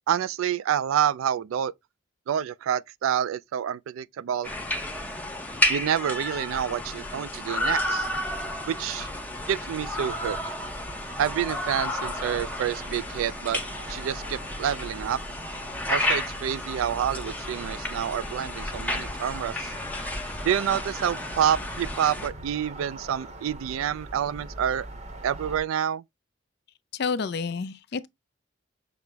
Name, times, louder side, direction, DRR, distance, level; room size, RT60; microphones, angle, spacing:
voice 1, 0.0-1.7 2.3-4.5 5.7-8.1 8.7-9.1 9.5-10.4 11.2-13.6 13.9-15.2 15.9-19.7 20.5-24.9 25.2-26.0, right 9 dB, 85° right, 0.3 m, -28 dB
sound 1, 4.4-22.3, left 1 dB, 10° left, 0.6 m, -32 dB
sound 2, 7.7-25.6, right 1 dB, 35° right, 0.7 m, -43 dB
voice 2, 26.9-28.1, left 5 dB, 55° left, 0.4 m, -29 dB
6.0 x 2.0 x 3.3 m
head